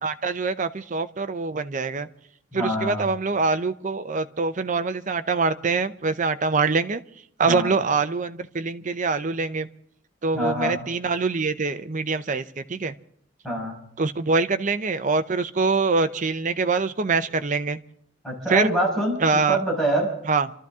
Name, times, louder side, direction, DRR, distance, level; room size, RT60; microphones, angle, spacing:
voice 1, 0.0-2.1 2.5-7.0 7.4-9.7 10.2-12.9 14.0-17.8 18.5-18.7 19.2-19.6 20.3-20.5, right 4 dB, 40° right, 10 dB, 0.6 m, -24 dB
voice 2, 2.5-3.0 7.4-7.7 10.3-10.8 13.4-13.8 18.2-20.1, right 1 dB, ahead, -3 dB, 5.8 m, -25 dB
29.0 x 13.0 x 3.6 m, 0.68 s
head